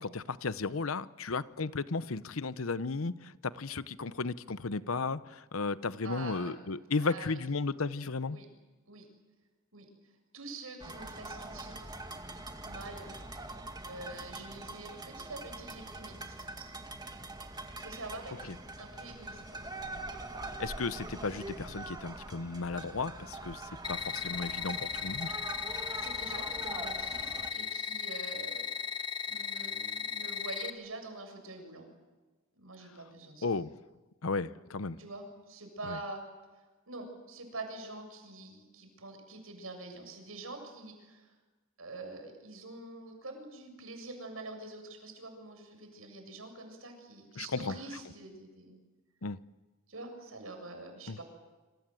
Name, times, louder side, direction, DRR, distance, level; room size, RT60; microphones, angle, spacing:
voice 1, 0.0-8.4 20.6-25.3 33.4-33.7 34.2-35.0 35.9-36.0 47.4-47.7 49.2-49.4 51.1-51.2, left 4 dB, 80° left, 15 dB, 0.9 m, -34 dB
voice 2, 6.0-6.5 7.0-7.4 8.3-8.5 8.9-9.1 9.7-9.9 10.3-11.9 12.6-13.1 13.8-16.8 17.8-19.7 25.6-28.7 29.3-31.9 32.6-33.5 35.0-36.2 36.5-41.4 41.8-48.8 49.9-51.2, right 2 dB, 80° right, 5 dB, 7.4 m, -45 dB
sound 1, 10.8-27.5, right 2 dB, 20° right, 2.1 m, -43 dB
sound 2, 23.8-30.7, left 6 dB, 20° left, 1.4 m, -36 dB
27.5 x 26.5 x 7.7 m, 1.2 s
head